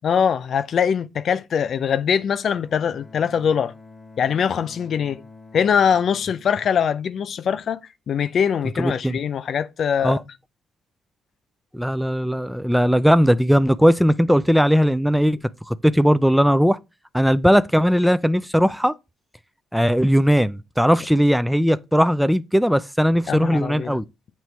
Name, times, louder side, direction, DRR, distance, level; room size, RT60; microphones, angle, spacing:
voice 1, 0.0-3.7 4.2-5.2 5.5-7.8 8.1-10.2 23.3-24.0, left 7 dB, 60° left, 0.5 m, -22 dB
Bowed string instrument, 2.5-7.5, left 3 dB, 25° left, 0.8 m, -47 dB
voice 2, 8.8-9.2 10.0-10.2 11.7-15.4 15.7-16.8 17.1-18.9 19.7-24.0, equal, ahead, 0.3 m, -18 dB
8.1 x 3.1 x 4.5 m
cardioid pair, 90°, 0 cm